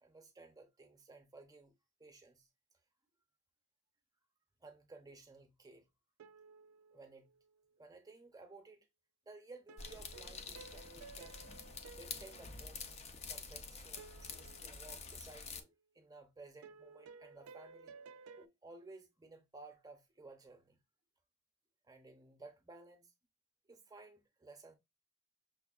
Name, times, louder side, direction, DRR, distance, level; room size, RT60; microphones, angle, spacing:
voice 1, 0.0-2.5 4.6-5.9 6.9-7.3 7.8-8.9 9.3-11.4 11.9-12.8 13.3-18.0 18.4-20.8 21.8-23.1 23.7-24.7, right 3 dB, 15° right, 0.6 m, -56 dB
sound 1, 6.2-7.7 9.7-13.3 14.0-15.5 16.6-18.5, right 4 dB, 80° right, 0.3 m, -57 dB
sound 2, 9.8-15.6, left 5 dB, 30° left, 0.4 m, -48 dB
6.0 x 2.2 x 2.3 m
head